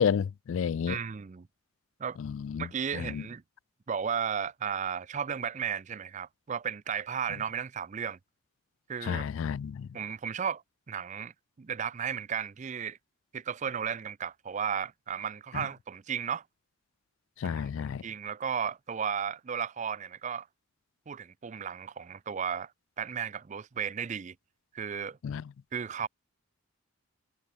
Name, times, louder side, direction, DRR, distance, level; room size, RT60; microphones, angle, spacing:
voice 1, 0.0-1.0 2.2-2.7 2.9-3.2 9.0-9.9 15.5-15.6 17.4-18.0 25.2-25.4, left 7 dB, 60° left, 0.3 m, -30 dB
voice 2, 0.9-1.5 2.0-2.2 2.6-3.4 3.9-8.2 8.9-9.2 9.9-13.0 13.3-16.4 17.4-17.7 18.0-20.5 21.1-22.7 23.0-24.3 24.7-25.2 25.7-26.1, right 7 dB, 35° right, 0.4 m, -34 dB
head